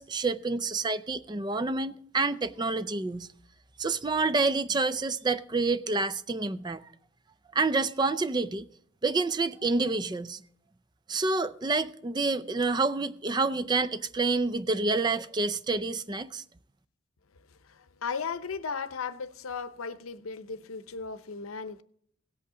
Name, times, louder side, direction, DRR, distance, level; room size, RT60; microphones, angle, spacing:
voice 1, 0.0-3.3 3.8-6.8 7.5-8.6 9.0-10.4 11.1-16.4, right 3 dB, 20° right, 0.4 m, -28 dB
voice 2, 17.6-21.8, left 5 dB, 90° left, 0.7 m, -36 dB
17.5 x 8.3 x 3.7 m
head